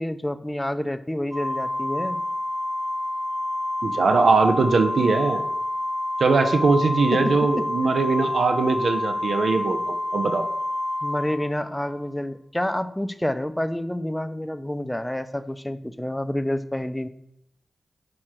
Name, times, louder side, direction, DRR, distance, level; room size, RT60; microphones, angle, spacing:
voice 1, 0.0-2.2 7.1-7.7 11.0-17.1, left 1 dB, 10° left, 10 dB, 0.5 m, -28 dB
Organ, 1.3-12.0, left 1 dB, 30° right, 1.2 m, -28 dB
voice 2, 3.8-5.4 6.2-10.5, right 4 dB, 75° right, 8 dB, 0.6 m, -21 dB
6.3 x 4.8 x 4.4 m, 0.75 s
cardioid pair, 50°, 0 cm